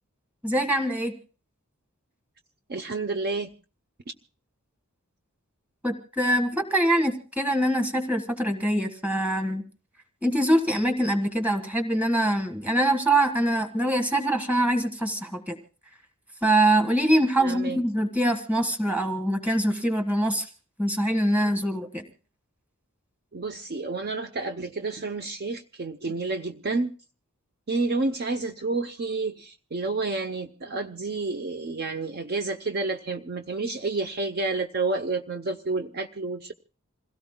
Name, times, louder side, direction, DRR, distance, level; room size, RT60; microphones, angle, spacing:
voice 1, 0.4-1.1 5.8-9.6 10.2-15.5 16.4-20.5 20.8-22.0, right 1 dB, 5° right, 1.6 m, -24 dB
voice 2, 2.7-3.5 17.4-17.8 23.3-26.9 27.7-36.5, right 3 dB, 45° right, 0.7 m, -30 dB
27.5 x 17.0 x 2.2 m
head